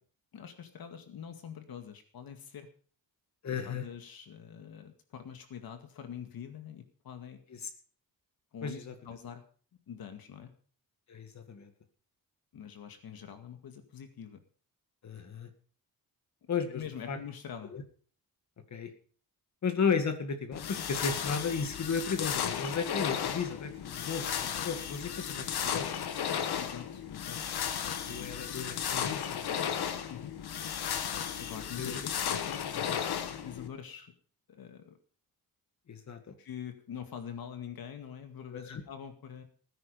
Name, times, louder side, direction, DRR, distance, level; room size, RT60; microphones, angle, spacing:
voice 1, 0.3-2.7 3.5-7.4 8.5-9.4 9.9-10.5 12.5-14.4 16.7-17.8 26.6-27.6 28.1-28.3 30.1-30.3 31.4-32.9 33.3-34.1 34.5-35.0 36.4-39.4, left 8 dB, 70° left, 7 dB, 2.2 m, -45 dB
voice 2, 3.4-3.9 7.5-7.6 8.6-8.9 11.1-11.7 15.0-15.5 16.5-17.2 17.7-17.8 18.7-18.9 19.6-26.0 28.1-29.8 31.8-32.0 32.7-33.0 35.9-36.3 38.5-38.8, left 5 dB, 45° left, 7 dB, 2.2 m, -34 dB
sound 1, 20.5-33.7, left 8 dB, 90° left, 1.6 m, -35 dB
18.0 x 10.0 x 5.3 m, 0.43 s
wide cardioid pair, 170°, 37 cm